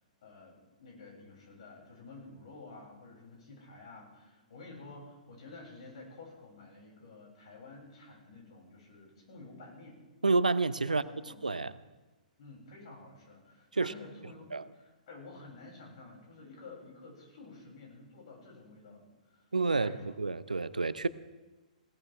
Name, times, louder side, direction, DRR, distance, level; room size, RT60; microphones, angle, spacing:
voice 1, 0.2-10.0 10.9-11.5 12.4-20.2, left 3 dB, 50° left, -2 dB, 6.9 m, -51 dB
voice 2, 10.2-11.0 11.4-11.7 13.7-13.9 14.5-14.6 19.5-21.1, right 3 dB, 80° right, 16 dB, 0.6 m, -29 dB
19.5 x 17.5 x 3.5 m, 1.2 s
figure-of-eight pair, 115°, 4 cm